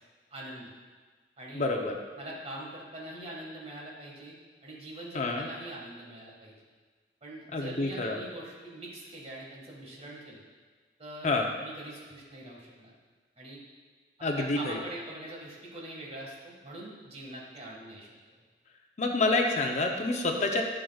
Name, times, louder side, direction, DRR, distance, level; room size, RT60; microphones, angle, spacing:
voice 1, 0.3-0.7 1.4-1.7 2.2-6.5 7.2-10.4 11.0-12.9 13.4-13.6 14.4-18.1, right 1 dB, 35° right, -3 dB, 1.7 m, -43 dB
voice 2, 1.5-2.0 5.1-5.5 7.5-8.2 11.2-11.5 14.2-14.8 19.0-20.6, left 2 dB, 40° left, 2 dB, 0.7 m, -28 dB
11.0 x 6.5 x 2.3 m, 1.5 s
head